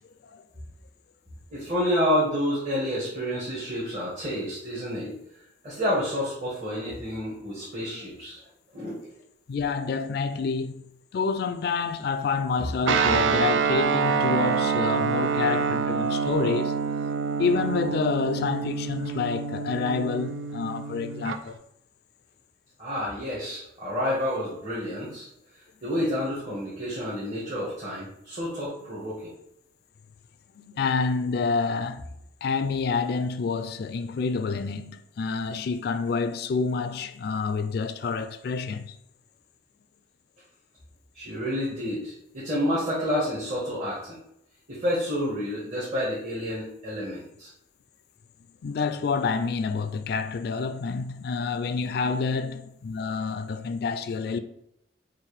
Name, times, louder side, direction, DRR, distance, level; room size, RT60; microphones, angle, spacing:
voice 1, 1.5-5.1 5.6-8.4 8.7-9.0 22.8-25.3 25.8-29.3 41.1-44.2 44.7-47.5, equal, 40° right, 1.4 m, -29 dB
voice 2, 9.5-10.8 11.1-16.7 17.4-21.6 30.6-32.1 32.4-39.0 48.6-54.4, left 4 dB, 55° left, 0.3 m, -28 dB
Guitar, 12.9-21.4, right 5 dB, 80° right, 0.4 m, -26 dB
5.6 x 2.6 x 3.3 m
head